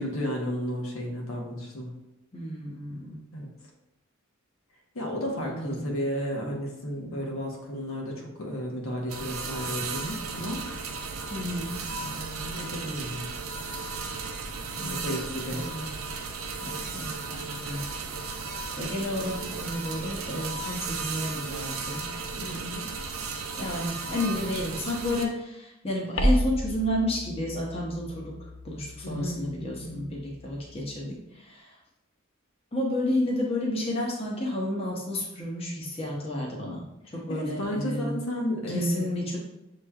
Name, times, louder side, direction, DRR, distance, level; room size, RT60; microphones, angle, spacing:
voice 1, 0.0-1.9 3.3-3.5 4.9-10.6 12.0-13.3 14.8-15.7 22.3-22.8 29.0-30.1 37.3-39.0, equal, 80° left, -1 dB, 1.1 m, -33 dB
voice 2, 2.3-3.2 5.4-5.9 11.3-11.8 14.8-15.1 15.5-15.9 16.6-17.8 18.3-18.4 18.8-22.1 22.5-22.6 23.6-31.7 32.7-38.2 38.7-39.4, left 1 dB, 30° left, -3 dB, 0.8 m, -31 dB
sound 1, 9.1-25.2, right 4 dB, 80° right, 0.5 m, -35 dB
sound 2, 26.2-31.0, equal, 60° left, 0.5 m, -32 dB
7.1 x 3.0 x 2.3 m, 0.88 s
head